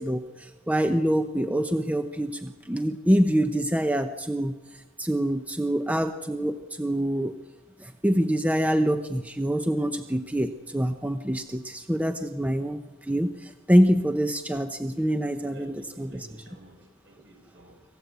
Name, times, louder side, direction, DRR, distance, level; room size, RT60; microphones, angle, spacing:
voice 1, 0.0-4.6 5.0-7.3 7.8-16.3, equal, 5° right, 0.8 m, -25 dB
voice 2, 15.5-17.8, right 1 dB, 65° right, 5.4 m, -50 dB
26.5 x 16.0 x 8.4 m
head